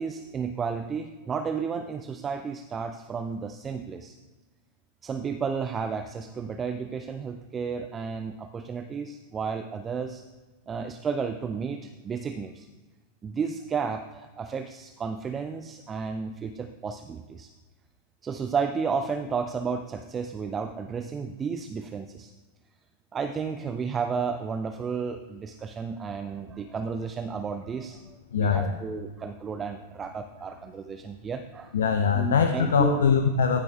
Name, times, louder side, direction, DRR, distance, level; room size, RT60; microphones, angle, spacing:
voice 1, 0.0-4.2 5.0-10.2 10.7-12.7 13.2-17.5 18.2-22.3 23.1-31.8 32.1-33.0, right 5 dB, 20° right, 8 dB, 0.4 m, -32 dB
voice 2, 28.3-28.8 31.7-33.6, left 6 dB, 65° left, 7 dB, 0.5 m, -22 dB
15.0 x 8.4 x 2.4 m, 1.3 s
figure-of-eight pair, 90°, 0 cm